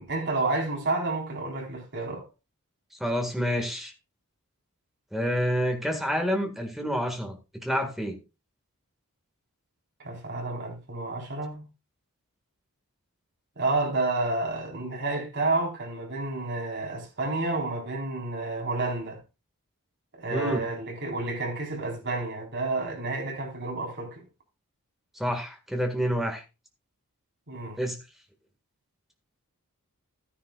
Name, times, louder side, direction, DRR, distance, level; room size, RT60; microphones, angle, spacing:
voice 1, 0.0-2.2 10.0-11.7 13.6-19.2 20.1-24.2 27.5-27.8, right 2 dB, 55° right, 4.1 m, -30 dB
voice 2, 3.0-3.9 5.1-8.2 20.3-20.6 25.2-26.4 27.8-28.0, equal, ahead, 1.8 m, -28 dB
13.5 x 10.0 x 2.4 m
head